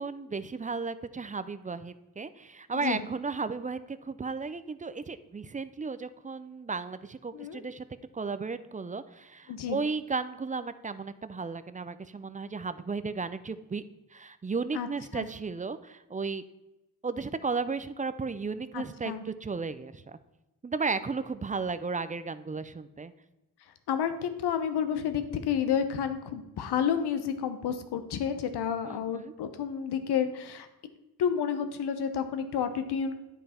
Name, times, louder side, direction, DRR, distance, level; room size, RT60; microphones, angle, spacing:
voice 1, 0.0-7.8 8.1-13.8 14.1-16.4 17.0-20.2 20.6-23.1 28.8-29.3, right 4 dB, 20° right, 13 dB, 0.4 m, -34 dB
voice 2, 2.7-3.0 7.3-7.6 9.5-9.8 14.7-14.9 15.1-15.3 18.7-19.2 23.9-30.7 31.2-33.1, left 8 dB, 85° left, 9 dB, 0.9 m, -30 dB
9.3 x 5.3 x 4.3 m, 0.99 s
cardioid pair, 80°, 39 cm